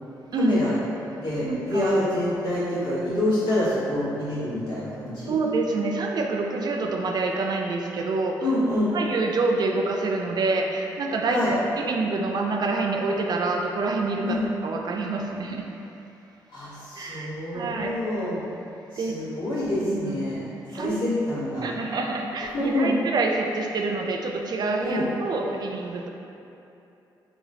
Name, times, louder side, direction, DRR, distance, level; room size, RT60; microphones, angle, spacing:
voice 1, 0.4-0.7 1.2-5.3 8.4-8.9 11.3-11.5 14.2-14.4 16.5-18.4 18.9-20.4 20.7-21.6 22.5-22.9 24.8-25.0, left 1 dB, 80° left, -12 dB, 1.4 m, -26 dB
voice 2, 1.4-1.9 5.3-8.5 8.9-15.7 17.0-17.9 19.0-19.1 19.8-20.2 20.7-21.0 21.6-26.1, right 3 dB, 55° right, 1 dB, 0.4 m, -27 dB
3.0 x 3.0 x 3.7 m, 2.8 s
supercardioid pair, 65°, 9 cm